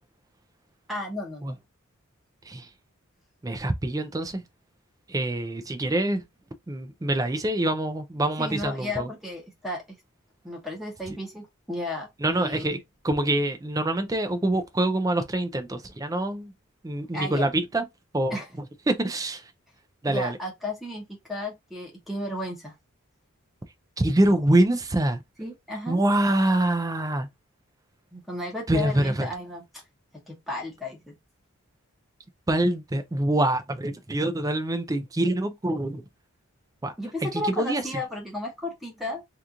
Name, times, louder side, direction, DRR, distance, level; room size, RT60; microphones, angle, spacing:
voice 1, 0.9-1.5 8.4-9.8 10.4-12.8 17.1-17.5 18.3-18.5 20.1-22.7 25.4-26.0 28.1-29.6 30.3-31.1 37.0-39.2, left 1 dB, ahead, 0.8 m, -34 dB
voice 2, 3.4-4.4 5.1-6.2 6.7-9.1 12.2-12.8 13.0-16.5 16.8-17.9 18.1-18.4 18.9-19.5 20.0-20.4 24.0-25.2 25.9-27.3 28.7-29.3 32.5-36.0 36.8-36.9 37.2-38.0, right 1 dB, 15° right, 0.4 m, -25 dB
2.9 x 2.4 x 3.6 m
head